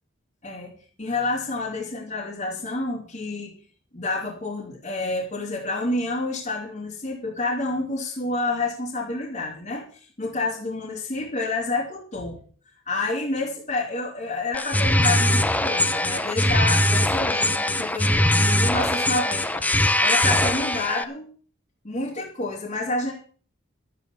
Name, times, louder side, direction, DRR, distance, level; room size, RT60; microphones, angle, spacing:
voice 1, 1.0-3.5 3.9-12.4 12.9-21.3 21.8-23.1, left 2 dB, 40° left, -3 dB, 3.0 m, -29 dB
sound 1, 14.5-21.0, left 1 dB, 10° left, 0.7 m, -21 dB
13.0 x 8.5 x 7.0 m, 0.43 s
head